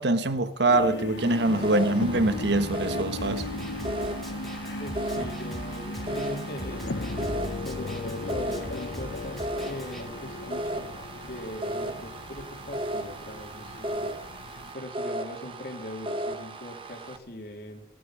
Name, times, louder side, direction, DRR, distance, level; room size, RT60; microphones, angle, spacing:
voice 1, 0.0-3.4, right 2 dB, 65° right, 1.2 m, -24 dB
sound 1, 0.7-14.7, left 2 dB, 75° left, 0.9 m, -36 dB
sound 2, 1.2-17.2, right 1 dB, 30° right, 1.4 m, -36 dB
Snare drum, 3.2-10.0, equal, ahead, 2.2 m, -42 dB
voice 2, 4.8-6.9 7.6-10.9 11.2-14.2 14.7-17.8, left 1 dB, 55° left, 2.9 m, -40 dB
16.5 x 11.5 x 6.2 m
head